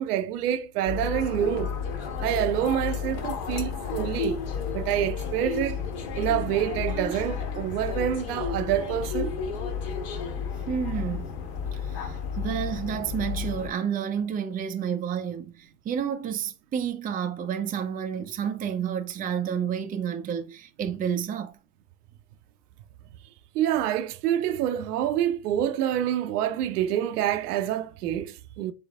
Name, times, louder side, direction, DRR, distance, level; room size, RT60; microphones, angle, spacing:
voice 1, 0.0-1.8 2.2-4.4 4.7-5.8 6.2-9.3 23.5-28.7, right 11 dB, 75° right, 0.8 m, -27 dB
sound 1, 0.9-13.7, left 6 dB, 50° left, 1.4 m, -32 dB
voice 2, 10.7-11.3 11.7-21.6, right 8 dB, 20° right, 0.6 m, -30 dB
3.8 x 3.4 x 3.6 m
hypercardioid pair, 100°, 47 cm